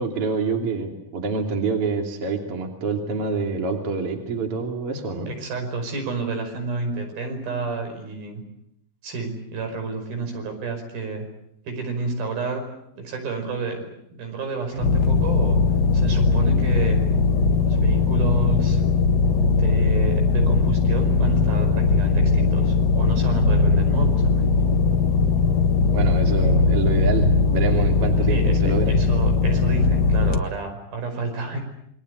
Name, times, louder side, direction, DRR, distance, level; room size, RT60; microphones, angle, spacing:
voice 1, 0.0-5.3 14.7-14.9 25.9-28.9, right 4 dB, 40° right, 3 dB, 3.7 m, -26 dB
voice 2, 5.3-8.4 9.0-11.3 11.7-12.6 13.0-15.6 15.9-17.0 17.6-18.8 19.6-24.5 28.3-31.6, right 4 dB, 80° right, 5 dB, 7.2 m, -30 dB
sound 1, 14.8-30.4, left 4 dB, 75° left, 0.9 m, -19 dB
28.5 x 22.5 x 8.1 m, 0.76 s
omnidirectional pair, 4.2 m